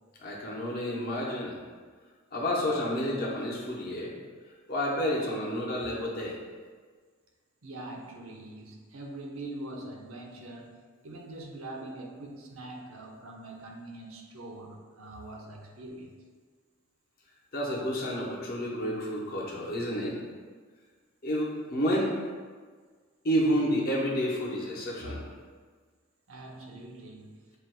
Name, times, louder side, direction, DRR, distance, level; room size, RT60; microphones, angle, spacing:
voice 1, 0.2-1.6 2.3-4.1 4.7-6.4 17.5-20.1 21.2-22.1 23.2-25.2, equal, 45° left, -3 dB, 0.8 m, -30 dB
voice 2, 7.6-16.1 26.3-27.3, right 2 dB, 80° right, 1 dB, 0.7 m, -43 dB
7.5 x 2.6 x 2.2 m, 1.6 s
head